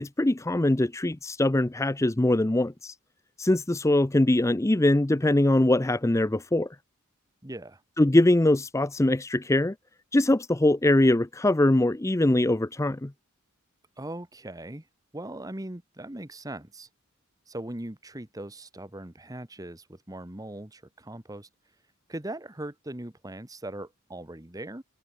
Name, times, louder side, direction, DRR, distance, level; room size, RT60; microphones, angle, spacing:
voice 1, 0.0-2.9 3.4-6.7 8.0-9.7 10.1-13.1, left 1 dB, 15° left, 0.5 m, -22 dB
voice 2, 7.4-7.8 14.0-14.9 15.1-16.9 17.5-21.5 22.1-24.8, right 1 dB, 15° right, 1.3 m, -39 dB
head